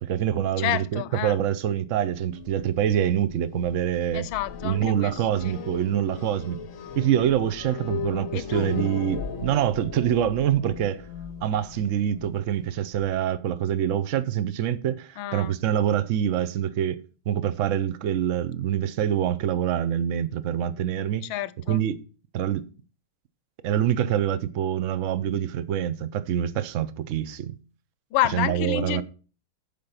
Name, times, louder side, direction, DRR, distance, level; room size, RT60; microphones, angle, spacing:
voice 1, 0.0-4.3 4.6-6.6 6.9-11.0 11.4-17.0 17.3-21.3 21.7-22.0 22.3-22.6 23.6-27.5 28.3-29.0, right 10 dB, 80° right, 0.7 m, -25 dB
voice 2, 0.6-1.4 4.1-5.5 8.3-8.7 15.2-15.5 21.2-21.8 28.1-29.0, left 13 dB, 80° left, 1.4 m, -29 dB
sound 1, 2.2-13.1, left 6 dB, 60° left, 0.9 m, -38 dB
11.5 x 5.2 x 5.7 m
omnidirectional pair, 2.2 m